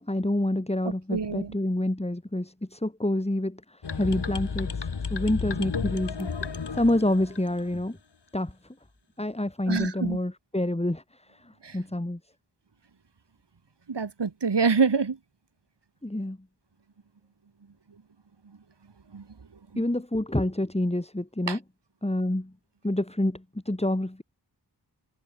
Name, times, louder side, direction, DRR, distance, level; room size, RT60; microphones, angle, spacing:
voice 1, 0.0-6.3 6.7-8.0 8.3-8.5 9.2-11.0 11.3-12.2 16.0-16.4 19.8-21.6 22.0-22.5 22.8-24.2, left 1 dB, 15° left, 4.4 m, -28 dB
voice 2, 1.1-1.5 9.7-10.2 11.6-11.8 13.9-15.2 19.1-19.2 19.7-19.8 21.5-21.6, right 5 dB, 80° right, 3.8 m, -26 dB
sound 1, 3.8-7.8, left 5 dB, 75° left, 2.3 m, -33 dB
wide cardioid pair, 80°, 41 cm